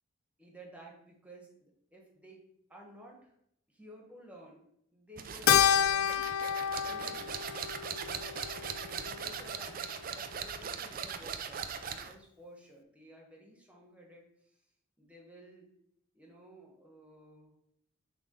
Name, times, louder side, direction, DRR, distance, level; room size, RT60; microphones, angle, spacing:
voice 1, 0.4-3.3 3.7-4.6 4.9-6.2 6.8-7.4 8.0-8.4 8.9-14.6 15.0-15.7 16.1-17.5, equal, 5° right, -2 dB, 1.6 m, -54 dB
sound 1, 5.2-12.2, right 6 dB, 45° right, 0.5 m, -40 dB
Keyboard (musical), 5.5-10.1, left 9 dB, 85° left, 0.4 m, -30 dB
7.2 x 3.4 x 5.3 m, 0.73 s
head